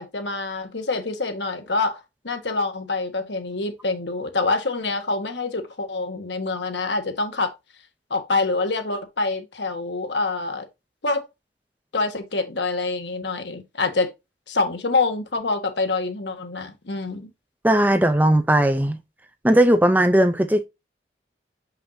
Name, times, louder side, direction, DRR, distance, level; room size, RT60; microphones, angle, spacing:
voice 1, 0.0-7.5 8.1-10.6 11.0-11.2 11.9-14.1 14.5-17.3, left 3 dB, 80° left, 1.4 m, -26 dB
voice 2, 17.6-19.0 19.4-20.7, right 1 dB, 10° right, 0.6 m, -17 dB
6.3 x 5.6 x 2.7 m
head